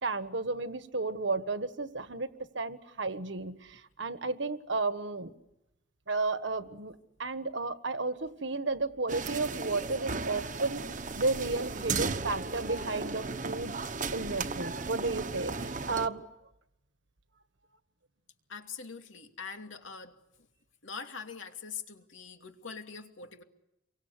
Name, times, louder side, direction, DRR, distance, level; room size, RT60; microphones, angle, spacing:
voice 1, 0.0-2.3 2.5-5.3 6.1-10.8 11.1-13.8 14.1-16.3, right 3 dB, 70° right, 10 dB, 1.5 m, -33 dB
sound 1, 9.1-16.1, right 4 dB, 40° right, 1.1 m, -35 dB
voice 2, 18.5-20.5 20.8-23.4, left 5 dB, 85° left, 4 dB, 2.7 m, -43 dB
28.5 x 24.0 x 8.2 m, 0.87 s
head